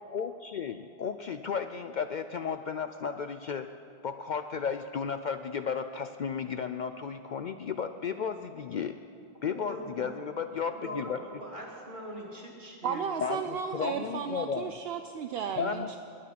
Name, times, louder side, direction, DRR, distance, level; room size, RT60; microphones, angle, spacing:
voice 1, 0.1-3.7 4.0-9.0 9.4-11.2 13.2-14.8 15.6-15.9, left 6 dB, 60° left, 9 dB, 0.5 m, -34 dB
voice 2, 9.4-10.1 10.8-13.0 13.7-14.1, equal, 50° right, -3 dB, 2.7 m, -42 dB
voice 3, 12.8-16.0, right 7 dB, 70° right, 7 dB, 0.8 m, -34 dB
21.0 x 9.8 x 5.8 m, 2.7 s
omnidirectional pair, 1.1 m